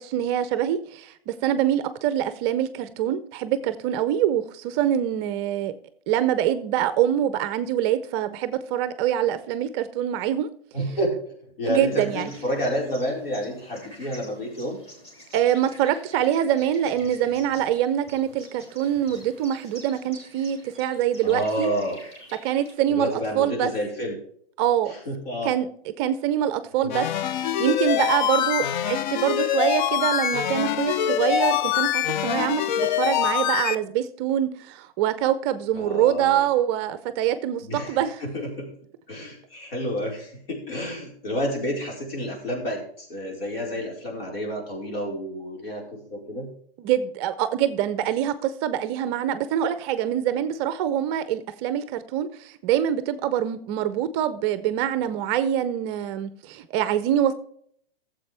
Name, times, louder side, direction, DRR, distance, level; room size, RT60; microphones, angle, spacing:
voice 1, 0.0-5.7 6.1-10.5 11.7-12.3 15.3-21.7 22.4-23.7 24.6-24.9 25.4-25.7 26.0-27.1 27.4-38.2 46.8-57.3, right 10 dB, 25° right, 13 dB, 0.5 m, -25 dB
voice 2, 10.7-11.2 11.6-14.8 21.2-22.0 22.9-24.1 24.9-25.5 26.8-27.0 35.7-36.5 37.6-38.7 39.1-46.5, equal, 70° left, -1 dB, 4.7 m, -30 dB
sound 1, 11.6-22.8, equal, 20° left, 3.1 m, -48 dB
sound 2, 26.9-33.8, left 10 dB, 50° left, 0.5 m, -24 dB
14.0 x 7.5 x 3.3 m, 0.64 s
hypercardioid pair, 125°, 31 cm